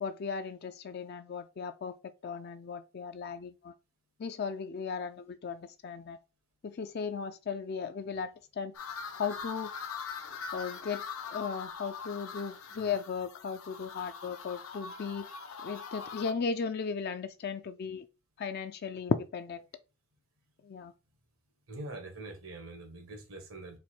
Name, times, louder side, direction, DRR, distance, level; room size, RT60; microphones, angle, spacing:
voice 1, 0.0-2.0 2.2-3.7 4.2-6.2 6.6-8.7 9.2-9.7 10.5-11.0 11.3-15.3 15.6-18.1 18.4-19.7 20.6-20.9, left 5 dB, 50° left, 0.4 m, -36 dB
sound 1, 8.7-16.3, left 5 dB, 90° left, 0.6 m, -42 dB
voice 2, 21.7-23.8, right 2 dB, 90° right, 1.6 m, -44 dB
4.2 x 2.5 x 4.3 m
head